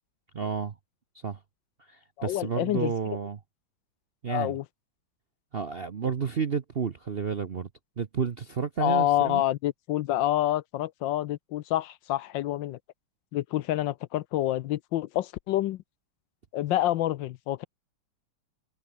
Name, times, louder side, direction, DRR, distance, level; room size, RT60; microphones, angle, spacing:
voice 1, 0.3-0.8 1.1-1.4 1.8-3.4 4.2-4.6 5.5-7.7 8.0-9.4, right 6 dB, 50° right, 0.7 m, -31 dB
voice 2, 2.2-2.9 4.3-4.6 8.8-12.8 13.3-15.8 16.5-17.6, left 14 dB, 75° left, 1.3 m, -27 dB
omnidirectional pair, 2.2 m